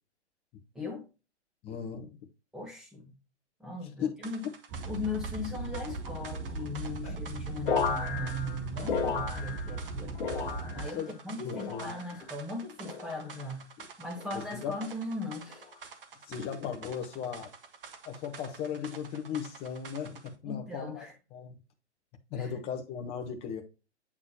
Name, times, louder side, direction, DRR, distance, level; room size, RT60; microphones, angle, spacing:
voice 1, 0.7-1.1 2.5-3.1 3.6-4.4 4.8-10.1 10.7-13.7 14.0-15.7 20.4-21.1 22.4-22.5, left 2 dB, ahead, 1.5 m, -38 dB
voice 2, 1.6-2.2 4.0-4.1 7.0-7.2 8.8-8.9 10.7-11.9 13.8-13.9 14.3-14.7 16.3-17.5 18.0-21.0 21.3-21.5 22.3-23.6, left 7 dB, 15° left, 0.9 m, -37 dB
sound 1, 4.2-20.3, right 5 dB, 50° right, 1.3 m, -49 dB
sound 2, 4.7-10.9, right 3 dB, 15° right, 0.8 m, -38 dB
sound 3, 7.7-9.9 10.2-11.0 11.5-12.2 12.8-13.3 14.2-14.6 15.5-15.8, left 6 dB, 45° left, 1.3 m, -34 dB
8.5 x 4.1 x 2.9 m
figure-of-eight pair, 125°, 35 cm